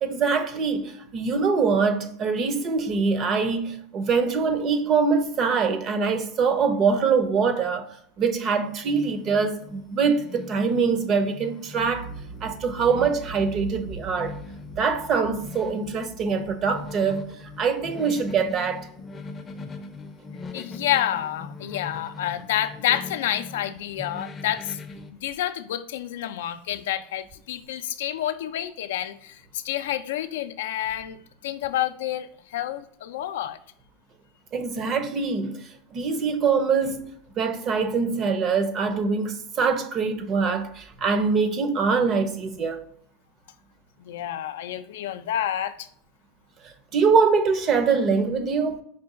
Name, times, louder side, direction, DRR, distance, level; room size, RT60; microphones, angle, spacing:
voice 1, 0.0-12.1 12.4-14.4 14.8-18.9 34.5-42.8 46.6-48.8, right 5 dB, 40° right, 0.6 m, -24 dB
sound 1, 8.6-25.1, left 4 dB, 20° left, 0.5 m, -41 dB
sound 2, 11.8-19.6 19.8-20.0, right 4 dB, 55° right, 1.0 m, -42 dB
voice 2, 20.5-24.8 25.1-31.2 31.4-33.6 44.0-45.9, left 12 dB, 85° left, 0.3 m, -29 dB
5.1 x 2.3 x 3.7 m
supercardioid pair, 125°, 0 cm